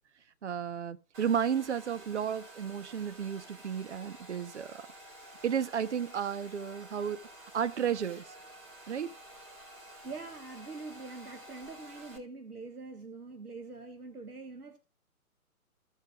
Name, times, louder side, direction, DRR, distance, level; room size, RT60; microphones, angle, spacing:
voice 1, 0.4-4.7 5.4-7.3 7.5-8.2 8.9-9.1, right 8 dB, 50° right, 0.9 m, -33 dB
Domestic sounds home sounds, 1.1-12.2, right 1 dB, 20° right, 1.8 m, -51 dB
voice 2, 10.0-14.8, right 3 dB, 85° right, 1.6 m, -44 dB
16.0 x 7.1 x 2.4 m
figure-of-eight pair, 140°, 44 cm